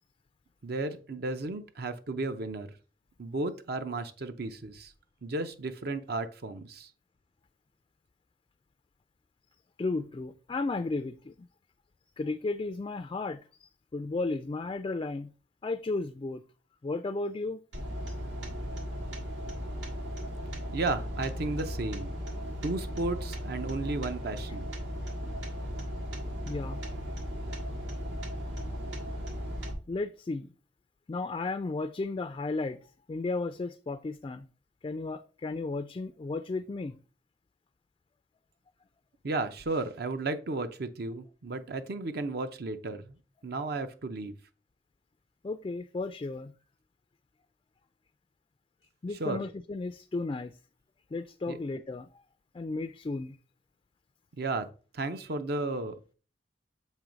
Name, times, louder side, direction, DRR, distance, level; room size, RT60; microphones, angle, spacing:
voice 1, 0.6-2.7 3.2-4.9 5.2-6.9 20.7-22.1 22.6-24.7 39.2-43.2 43.4-44.3 49.2-49.4 51.5-51.6 54.3-55.9, right 2 dB, 60° right, 0.6 m, -34 dB
voice 2, 9.8-11.5 12.2-15.3 15.6-16.4 16.8-17.6 18.1-18.2 26.5-26.8 29.9-30.5 31.1-32.8 33.1-34.5 34.8-37.0 45.4-46.5 49.0-50.6 51.1-52.2 52.5-53.4, left 3 dB, 25° left, 0.3 m, -34 dB
sound 1, 17.7-29.7, equal, 80° right, 1.7 m, -36 dB
7.4 x 3.1 x 5.0 m
head